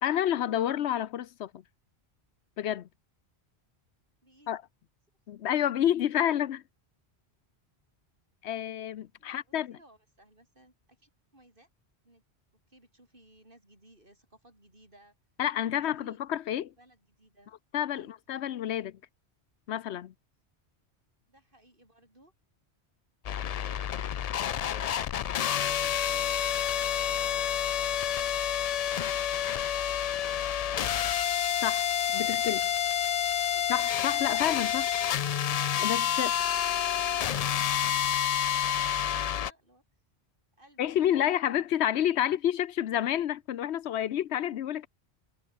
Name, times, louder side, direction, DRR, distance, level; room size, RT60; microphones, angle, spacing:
voice 1, 0.0-1.6 2.6-2.9 4.5-4.6 5.3-6.6 8.4-9.8 15.4-16.7 17.7-19.0 19.7-20.1 31.6-31.8 32.1-32.6 33.7-34.9 35.8-36.3 40.8-44.9, left 11 dB, 80° left, 0.9 m, -29 dB
voice 2, 4.2-4.5 9.2-11.7 12.0-12.2 12.7-15.2 15.8-16.2 16.8-17.5 17.9-18.1 21.3-22.3 23.3-24.1 24.6-28.4 28.8-31.1 31.8-33.2 33.4-33.7 36.1-36.7 37.0-39.8 40.6-41.3, right 1 dB, 50° right, 8.0 m, -59 dB
sound 1, 23.2-39.5, left 9 dB, 60° left, 0.4 m, -29 dB
omnidirectional pair, 1.1 m